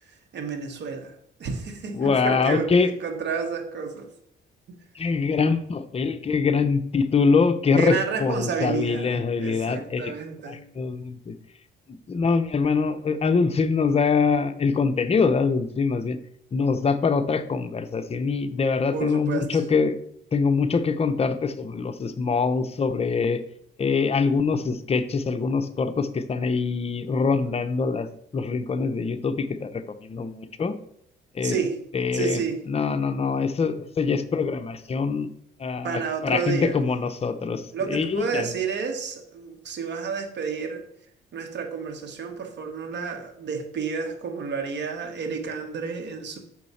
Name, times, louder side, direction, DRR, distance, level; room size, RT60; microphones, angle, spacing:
voice 1, 0.1-4.1 7.7-10.6 18.9-19.6 31.4-31.8 32.1-32.6 35.8-36.7 37.7-40.8 41.3-46.4, right 6 dB, 60° right, 5 dB, 1.2 m, -30 dB
voice 2, 1.9-2.9 5.0-10.1 10.5-11.3 12.1-16.2 16.5-19.9 20.3-23.4 23.8-28.1 28.3-30.8 31.4-31.6 31.9-32.4 32.7-35.3 35.6-37.6 37.9-38.5, left 5 dB, 30° left, 9 dB, 0.6 m, -24 dB
6.4 x 4.6 x 4.1 m, 0.69 s
cardioid pair, 90°, 20 cm